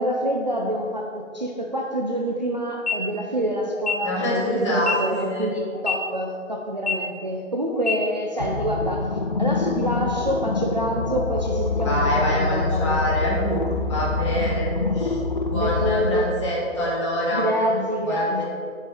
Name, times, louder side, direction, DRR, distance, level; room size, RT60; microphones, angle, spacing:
voice 1, 0.0-9.1 9.4-13.0 15.5-16.3 17.3-18.4, equal, 35° right, 0 dB, 0.5 m, -26 dB
sound 1, 2.7-2.9 3.7-3.9 4.7-4.9 5.7-5.9 6.7-6.9 7.7-7.9, left 6 dB, 55° left, 1.2 m, -25 dB
voice 2, 4.0-5.5 11.8-14.7 14.9-17.5 18.1-18.4, equal, 20° left, -5 dB, 1.7 m, -26 dB
sound 2, 8.4-16.0, left 3 dB, 40° left, 0.6 m, -26 dB
6.9 x 6.5 x 4.9 m, 2.3 s
figure-of-eight pair, 150°, 39 cm